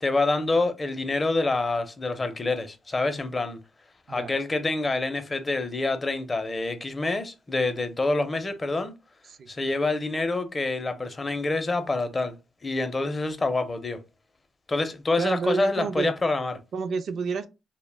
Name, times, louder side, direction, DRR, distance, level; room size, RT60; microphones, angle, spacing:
voice 1, 0.0-3.6 4.1-8.9 9.5-12.4 12.6-14.0 14.7-16.6, left 2 dB, 25° left, 0.5 m, -27 dB
voice 2, 15.2-16.1 16.7-17.5, right 5 dB, 60° right, 0.3 m, -29 dB
2.1 x 2.1 x 3.2 m
cardioid pair, 90°, 0 cm